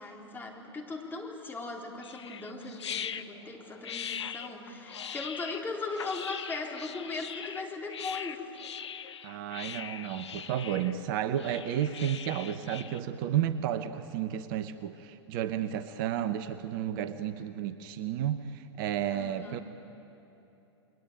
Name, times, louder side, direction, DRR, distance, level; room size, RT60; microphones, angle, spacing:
voice 1, 0.0-8.5 19.0-19.6, left 3 dB, 15° left, 0 dB, 3.9 m, -38 dB
sound 1, 2.0-13.0, left 8 dB, 70° left, 0.9 m, -41 dB
voice 2, 9.2-19.6, right 10 dB, 50° right, 11 dB, 1.1 m, -32 dB
29.5 x 22.0 x 9.2 m, 3.0 s
figure-of-eight pair, 100°, 15 cm